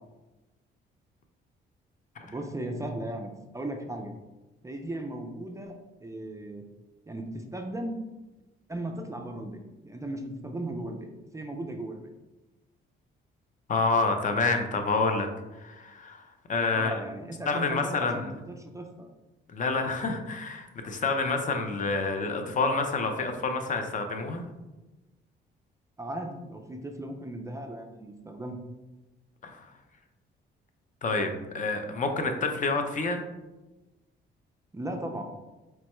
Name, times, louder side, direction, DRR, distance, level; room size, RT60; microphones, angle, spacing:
voice 1, 2.2-4.1 4.6-5.7 6.0-6.6 7.1-8.0 8.7-12.1 16.7-19.1 26.0-28.6 34.7-35.2, right 1 dB, 15° right, 3 dB, 0.3 m, -37 dB
voice 2, 13.7-15.3 15.6-16.2 16.5-17.0 17.5-18.3 19.5-24.4 29.4-29.7 31.0-31.3 31.5-33.2, left 3 dB, 40° left, 5 dB, 0.5 m, -28 dB
4.4 x 2.1 x 3.0 m, 1.1 s
cardioid pair, 90°, 20 cm